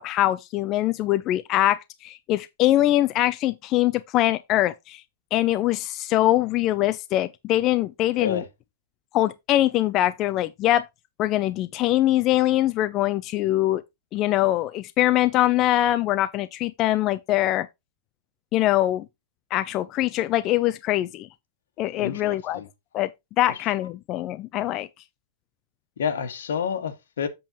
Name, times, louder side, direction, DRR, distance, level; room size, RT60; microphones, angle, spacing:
voice 1, 0.0-5.0 5.3-8.4 9.1-10.9 11.2-13.8 14.1-17.7 18.5-19.1 19.5-21.3 21.8-22.6 22.9-23.1 23.4-24.9, left 14 dB, 30° left, 0.4 m, -23 dB
voice 2, 8.1-8.4 22.0-22.7 23.4-23.5 26.0-27.3, left 7 dB, 80° left, 1.7 m, -29 dB
7.7 x 7.1 x 2.9 m
supercardioid pair, 165°, 0 cm